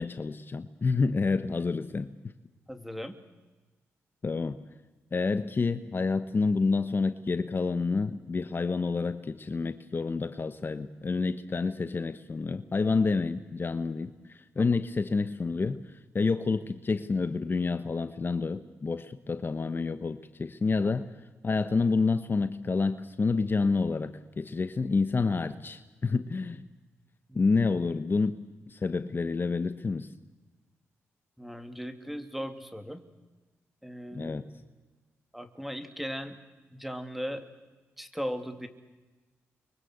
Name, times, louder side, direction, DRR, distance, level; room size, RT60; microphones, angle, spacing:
voice 1, 0.0-2.1 4.2-4.6 5.1-15.8 16.1-21.1 21.4-26.6 27.3-28.4 28.7-30.1 34.1-34.4, left 4 dB, 40° left, 10 dB, 1.2 m, -28 dB
voice 2, 2.7-3.1 14.6-14.8 20.8-20.9 27.3-27.5 31.4-33.0 33.8-34.4 35.3-36.4 36.7-37.5 38.0-38.7, equal, 5° right, 8 dB, 3.0 m, -38 dB
29.5 x 23.5 x 8.2 m, 1.2 s
cardioid pair, 65°, 5 cm